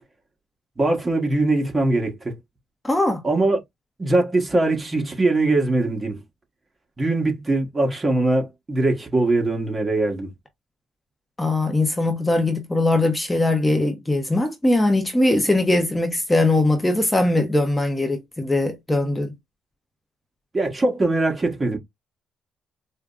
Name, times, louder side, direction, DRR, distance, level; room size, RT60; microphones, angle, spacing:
voice 1, 0.8-2.4 3.2-3.6 4.0-6.2 7.0-10.3 20.5-21.8, right 2 dB, 25° right, 1.4 m, -21 dB
voice 2, 2.8-3.2 11.4-19.3, left 2 dB, 10° left, 0.8 m, -21 dB
4.8 x 2.2 x 2.5 m
cardioid pair, 90°, 0 cm